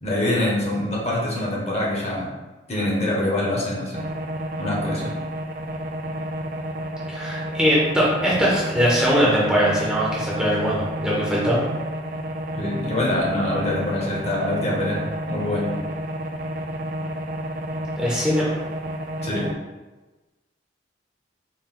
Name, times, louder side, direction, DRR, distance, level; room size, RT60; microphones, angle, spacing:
voice 1, 0.0-2.3 2.7-4.1 4.6-5.1 12.6-15.7 19.2-19.5, left 1 dB, 35° left, -4 dB, 0.9 m, -25 dB
sound 1, 3.9-19.5, right 1 dB, 50° right, 0.3 m, -31 dB
voice 2, 7.1-11.6 18.0-18.4, equal, 5° right, -6 dB, 0.7 m, -21 dB
4.2 x 2.2 x 3.7 m, 1.2 s
head